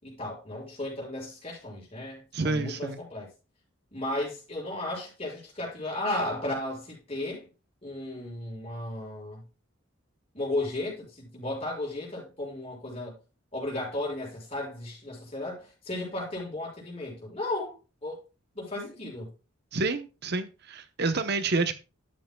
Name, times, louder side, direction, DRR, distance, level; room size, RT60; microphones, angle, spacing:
voice 1, 0.0-3.3 3.9-7.5 7.8-9.4 10.3-13.2 13.5-17.8 18.0-18.2 18.5-19.3, left 1 dB, 30° left, 6.2 m, -34 dB
voice 2, 2.3-3.0 19.7-21.7, right 3 dB, 55° right, 0.9 m, -28 dB
12.0 x 9.2 x 2.3 m
head